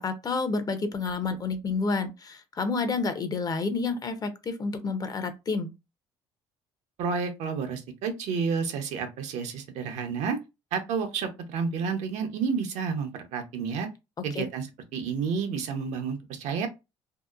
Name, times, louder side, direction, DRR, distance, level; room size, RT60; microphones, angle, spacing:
voice 1, 0.0-5.7 14.3-14.4, left 4 dB, 35° left, 0.5 m, -29 dB
voice 2, 7.0-10.4 10.7-13.9 14.2-14.7 14.9-16.7, right 5 dB, 75° right, 0.7 m, -30 dB
2.8 x 2.1 x 2.3 m
cardioid pair, 95°, 12 cm